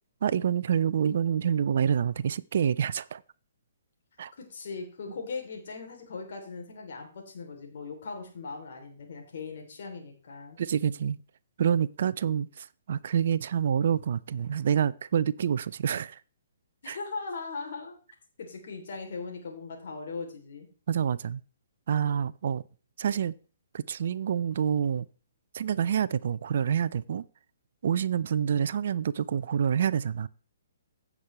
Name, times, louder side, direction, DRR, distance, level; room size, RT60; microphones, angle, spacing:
voice 1, 0.2-3.2 4.2-4.3 10.6-11.2 11.6-16.2 16.9-17.0 20.9-21.4 21.9-22.6 23.0-23.3 23.7-25.1 25.5-27.2 27.8-30.3, right 8 dB, 50° right, 0.4 m, -27 dB
voice 2, 4.4-10.6 16.8-18.0 18.4-20.7, left 4 dB, 50° left, 3.1 m, -39 dB
15.5 x 6.1 x 3.2 m
figure-of-eight pair, 125°, 0 cm